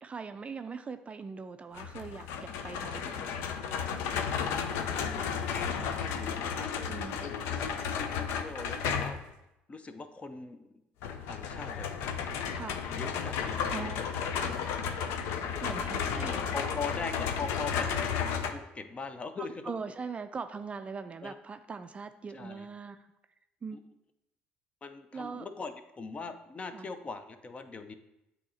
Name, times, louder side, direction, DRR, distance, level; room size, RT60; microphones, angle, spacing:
voice 1, 0.0-3.3 6.7-7.2 12.5-12.9 13.7-14.0 15.6-16.6 19.4-23.0 23.6-23.8 25.1-25.5 26.7-26.9, right 5 dB, 30° right, 10 dB, 0.4 m, -41 dB
sound 1, 1.7-9.3 11.0-18.5, left 7 dB, 75° left, 0.5 m, -33 dB
voice 2, 4.3-6.7 7.2-9.2 9.7-10.8 11.3-11.9 12.9-13.7 14.3-14.6 16.1-18.2 18.5-19.6 21.2-21.3 22.3-22.7 23.7-23.8 24.8-27.9, left 4 dB, 30° left, 9 dB, 0.5 m, -41 dB
8.2 x 2.8 x 4.2 m, 0.89 s
supercardioid pair, 80°, 4 cm